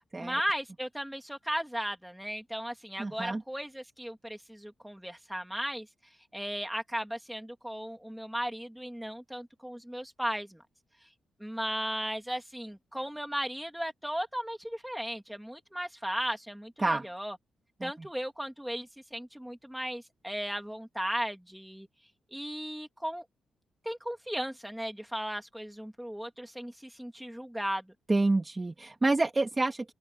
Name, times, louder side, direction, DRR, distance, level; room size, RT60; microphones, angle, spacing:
voice 1, 0.2-5.9 6.3-10.6 11.4-17.4 17.8-21.9 22.3-23.2 23.8-27.9, equal, 5° right, 3.1 m, -36 dB
voice 2, 3.0-3.4 16.8-17.1 17.8-18.1 28.1-29.9, right 2 dB, 20° right, 2.5 m, -28 dB
open air
cardioid pair, 105°, 0 cm